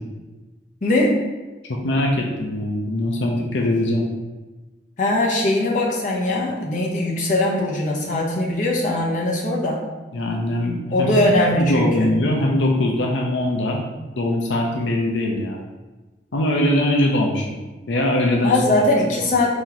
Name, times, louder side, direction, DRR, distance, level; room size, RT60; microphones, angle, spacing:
voice 1, 0.8-1.2 5.0-9.8 10.9-12.1 18.4-19.5, left 1 dB, 45° left, -3 dB, 0.8 m, -20 dB
voice 2, 1.6-4.1 10.1-11.1 11.6-15.6 16.3-17.6 17.9-18.6, left 1 dB, 80° left, 0 dB, 0.6 m, -21 dB
4.4 x 3.0 x 4.0 m, 1.2 s
head